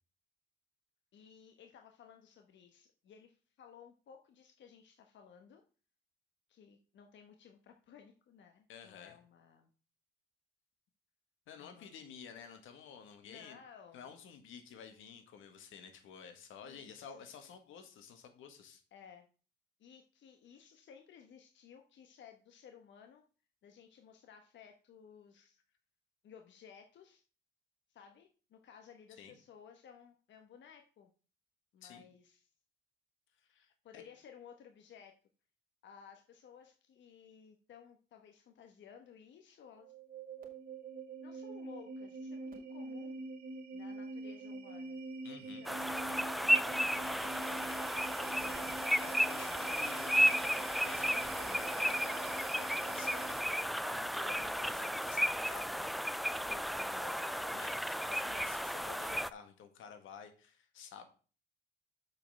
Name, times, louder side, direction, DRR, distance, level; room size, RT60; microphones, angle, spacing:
voice 1, 1.1-5.6 6.5-9.7 11.6-11.9 12.3-12.4 13.2-14.1 16.6-17.2 18.9-19.3 19.8-23.2 23.6-25.6 26.2-27.2 27.9-31.1 31.7-32.5 33.8-35.1 35.8-39.9 41.2-43.2 43.7-45.0 45.4-48.7 57.0-58.0, left 7 dB, 65° left, 5 dB, 1.2 m, -57 dB
voice 2, 8.7-9.2 11.5-13.6 13.9-18.8 25.4-25.5 29.2-29.3 31.8-32.0 33.4-34.0 45.2-45.7 49.0-55.9 56.5-57.2 57.4-61.1, left 7 dB, 85° left, 7 dB, 1.7 m, -52 dB
sound 1, 39.8-53.7, right 4 dB, 45° right, 2.3 m, -45 dB
sound 2, 45.7-59.3, equal, ahead, 0.4 m, -33 dB
6.8 x 5.4 x 6.2 m, 0.37 s
cardioid pair, 90°, 20 cm